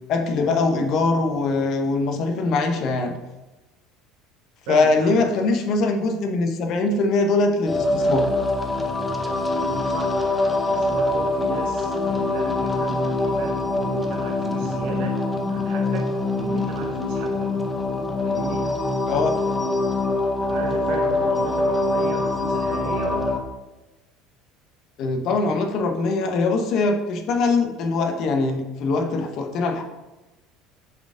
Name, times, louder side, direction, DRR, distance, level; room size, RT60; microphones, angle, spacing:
voice 1, 0.1-3.2 4.7-8.3 19.1-19.4 25.0-29.8, left 3 dB, 55° left, 5 dB, 0.8 m, -22 dB
voice 2, 4.7-5.3 9.6-10.2 10.6-15.2 15.5-17.6 18.2-18.8 20.4-23.4, right 8 dB, 75° right, 3 dB, 0.5 m, -35 dB
sound 1, 7.7-23.4, left 2 dB, 10° left, 0.7 m, -24 dB
7.0 x 4.2 x 3.7 m, 1.1 s
cardioid pair, 130°, 0 cm